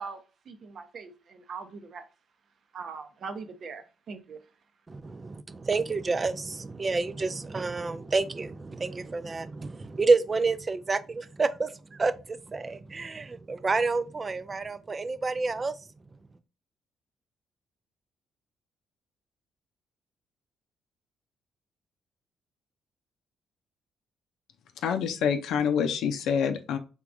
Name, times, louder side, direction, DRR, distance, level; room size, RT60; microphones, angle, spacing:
voice 1, 0.0-2.0 2.7-4.4, right 5 dB, 50° right, 0.7 m, -41 dB
voice 2, 4.9-15.8, right 3 dB, 25° right, 0.4 m, -29 dB
voice 3, 24.8-26.8, left 7 dB, 80° left, 0.5 m, -26 dB
4.6 x 3.6 x 2.6 m
cardioid pair, 140°, 0 cm